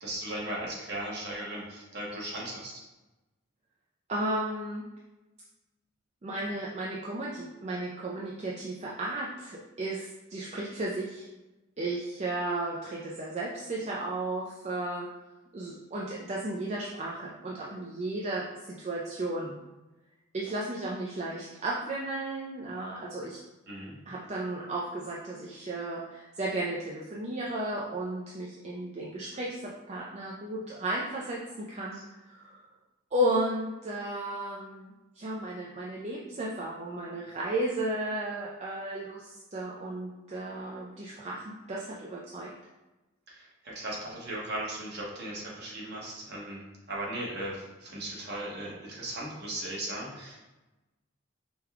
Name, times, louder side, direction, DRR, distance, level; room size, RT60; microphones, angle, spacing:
voice 1, 0.0-2.7 23.7-23.9 43.3-46.6 46.9-50.4, right 1 dB, 50° right, -4 dB, 1.1 m, -37 dB
voice 2, 4.1-4.8 6.2-11.3 11.8-15.1 15.5-19.6 20.3-23.4 24.1-32.6 33.1-42.5, right 1 dB, 30° right, -4 dB, 0.4 m, -34 dB
5.1 x 2.2 x 3.5 m, 1.1 s
head